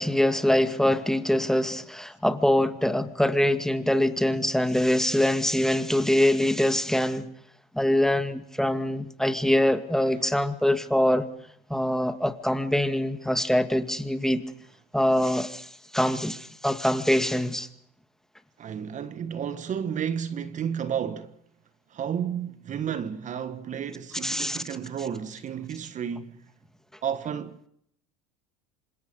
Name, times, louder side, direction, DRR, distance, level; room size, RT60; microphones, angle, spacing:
voice 1, 0.0-7.3 7.7-11.3 11.7-14.4 14.9-17.7 24.2-24.6, left 1 dB, ahead, 2.1 m, -24 dB
voice 2, 18.6-21.4 21.9-26.5 27.0-27.7, right 8 dB, 40° right, 1.5 m, -32 dB
28.0 x 26.5 x 5.4 m
hypercardioid pair, 85°, 19 cm